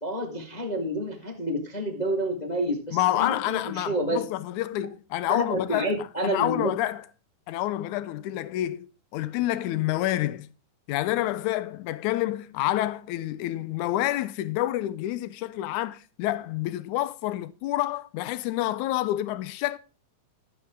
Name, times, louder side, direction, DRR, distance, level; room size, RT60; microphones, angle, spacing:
voice 1, 0.0-4.2 5.3-6.7, right 1 dB, 35° left, 0.6 m, -29 dB
voice 2, 2.9-5.9 6.2-7.0 7.5-8.9 9.1-10.5 10.9-19.8, left 15 dB, 85° left, 1.7 m, -28 dB
13.0 x 9.8 x 3.6 m
omnidirectional pair, 4.3 m